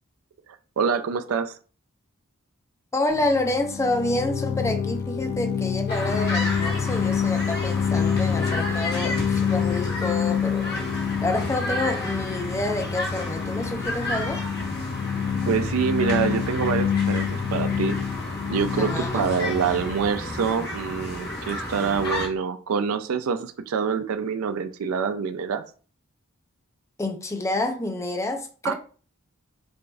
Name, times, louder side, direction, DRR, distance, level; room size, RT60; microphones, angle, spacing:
voice 1, 0.8-1.6 15.5-18.0 18.5-25.6 28.6-28.7, right 6 dB, 75° right, 0.4 m, -26 dB
voice 2, 2.9-14.4 18.8-19.3 27.0-28.7, left 2 dB, 15° left, 0.4 m, -28 dB
sound 1, 3.1-20.7, left 7 dB, 85° left, 0.4 m, -27 dB
sound 2, 5.9-22.3, left 1 dB, 50° left, 1.1 m, -32 dB
4.9 x 2.6 x 2.3 m
head